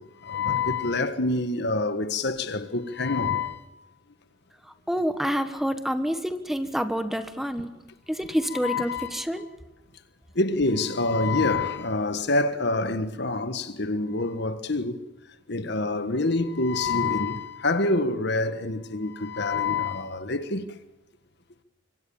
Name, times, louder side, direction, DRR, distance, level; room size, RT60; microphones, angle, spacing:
voice 1, 0.0-3.6 8.6-9.2 10.3-15.0 15.5-20.7, left 3 dB, 60° left, 1.5 m, -26 dB
voice 2, 4.9-7.7 8.1-9.4, equal, ahead, 1.4 m, -27 dB
25.0 x 24.5 x 7.2 m
head